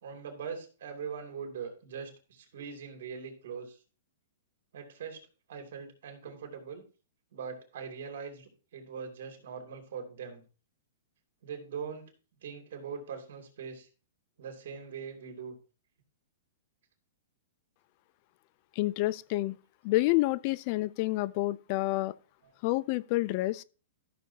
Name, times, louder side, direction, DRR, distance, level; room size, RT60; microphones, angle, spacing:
voice 1, 0.0-3.8 4.7-5.2 5.5-6.8 7.3-10.4 11.4-12.0 12.4-13.9 14.4-15.6, right 6 dB, 65° right, 2.9 m, -41 dB
voice 2, 18.8-19.6 19.8-22.1 22.6-23.6, left 19 dB, 40° left, 0.4 m, -28 dB
13.5 x 6.8 x 2.8 m
hypercardioid pair, 150°, 0 cm